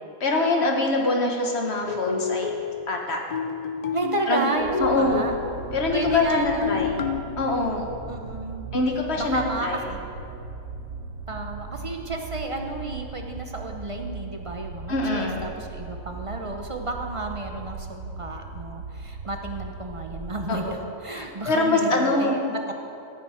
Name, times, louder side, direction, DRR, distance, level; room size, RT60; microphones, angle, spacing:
voice 1, 0.2-2.5 2.9-3.2 4.3-4.5 4.8-5.2 5.7-7.0 7.4-7.9 8.7-9.8 14.9-15.4 20.5-20.8 21.1-22.4, left 2 dB, 55° left, 1 dB, 1.5 m, -24 dB
sound 1, 1.9-2.9 3.3-5.8 6.0-7.2, left 5 dB, 90° left, 0.3 m, -29 dB
voice 2, 3.9-5.4 5.9-7.0 8.1-8.7 9.2-10.0 11.3-22.7, right 2 dB, 35° right, 3 dB, 0.5 m, -32 dB
sound 2, 4.6-20.8, right 4 dB, 85° right, 1.2 m, -38 dB
14.5 x 7.4 x 4.4 m, 2.8 s
omnidirectional pair, 1.4 m